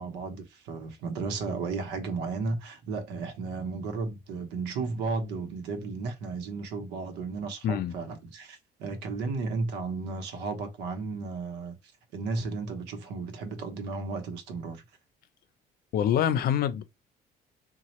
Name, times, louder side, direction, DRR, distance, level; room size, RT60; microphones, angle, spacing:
voice 1, 0.0-11.8 12.1-14.8, right 4 dB, 90° right, 0.9 m, -34 dB
voice 2, 7.6-7.9 15.9-16.8, left 9 dB, 60° left, 0.6 m, -25 dB
4.1 x 2.3 x 2.9 m
cardioid pair, 110°, 17 cm